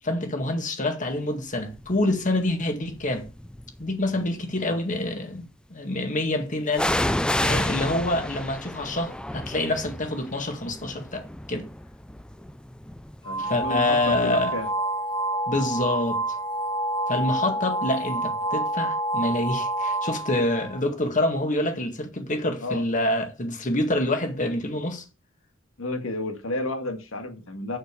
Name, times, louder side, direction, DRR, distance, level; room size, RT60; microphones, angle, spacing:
voice 1, 0.0-3.3 3.8-5.4 5.7-11.7 13.4-14.5 15.5-16.2 17.1-25.0, left 1 dB, 40° left, 1.9 m, -26 dB
sound 1, 1.8-2.1 2.9-3.8 6.7-14.4 14.6-14.7, left 1 dB, 5° left, 0.4 m, -30 dB
voice 2, 13.2-14.7 22.6-22.8 25.8-27.8, left 2 dB, 80° left, 1.9 m, -32 dB
sound 2, 13.2-20.8, right 1 dB, 25° left, 1.4 m, -28 dB
6.9 x 6.6 x 6.8 m
head